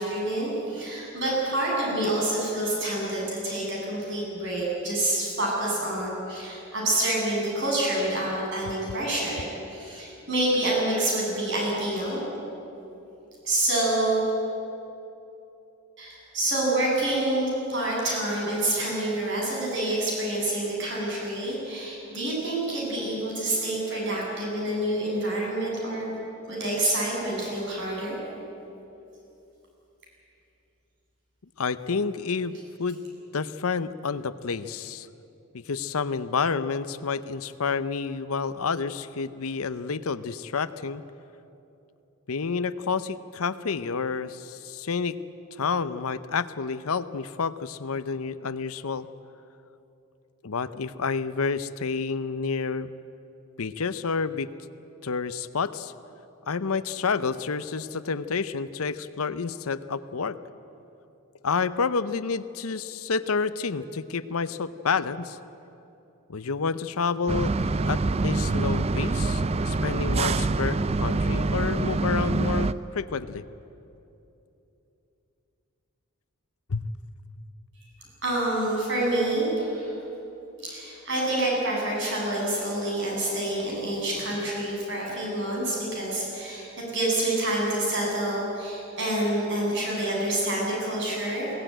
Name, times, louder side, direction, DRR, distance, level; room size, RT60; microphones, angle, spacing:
voice 1, 0.0-12.2 13.4-14.2 16.0-26.1 26.5-28.2 78.2-79.9 80.6-91.5, right 1 dB, 55° right, -3 dB, 7.7 m, -27 dB
voice 2, 31.6-33.0 33.3-35.1 35.5-41.0 42.3-45.2 45.5-49.1 50.4-52.9 53.6-54.5 55.0-55.9 56.5-60.4 61.4-65.4 66.3-67.5 67.9-73.4 76.7-76.8, left 5 dB, 80° left, 14 dB, 0.7 m, -29 dB
sound 1, 67.3-72.7, right 3 dB, 30° right, 0.4 m, -25 dB
21.5 x 17.0 x 9.1 m, 2.9 s
head